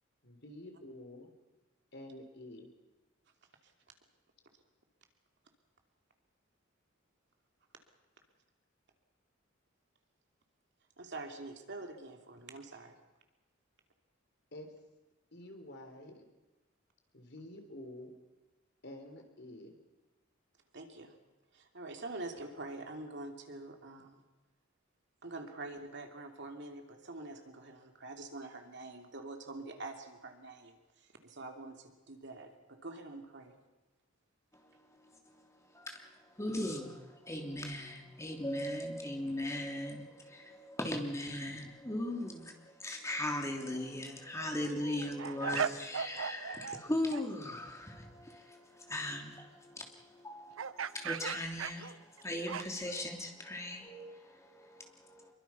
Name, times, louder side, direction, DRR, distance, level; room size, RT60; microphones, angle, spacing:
voice 1, 0.2-1.3 1.9-2.7 14.5-14.7 15.3-16.2 17.1-18.1 18.8-19.8, left 1 dB, 60° left, 4 dB, 3.7 m, -49 dB
voice 2, 11.0-12.9 20.7-21.1 21.5-24.2 25.2-33.6, right 2 dB, 60° right, 4 dB, 2.9 m, -46 dB
voice 3, 34.5-55.3, left 1 dB, 15° left, 2 dB, 3.1 m, -39 dB
sound 1, 43.6-43.8 44.3-46.8 47.1-47.3 50.6-52.9, right 7 dB, 85° right, 0.7 m, -38 dB
25.5 x 23.0 x 5.9 m, 1.1 s
head